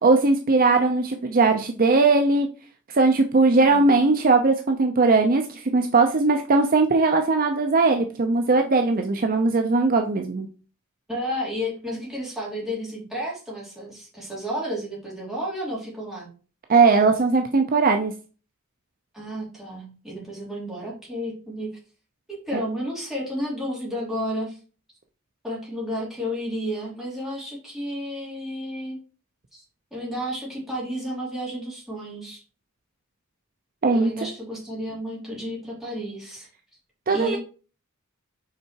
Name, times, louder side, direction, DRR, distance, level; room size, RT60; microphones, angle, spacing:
voice 1, 0.0-2.5 2.9-10.5 16.7-18.1 22.5-22.6 33.8-34.1 37.1-37.4, right 3 dB, 45° right, 5 dB, 0.6 m, -19 dB
voice 2, 11.1-16.3 19.1-21.7 22.3-24.6 25.4-29.0 29.5-29.6 29.9-32.4 33.9-36.5 37.1-37.4, equal, ahead, -6 dB, 3.2 m, -32 dB
5.7 x 4.6 x 4.6 m, 0.37 s
head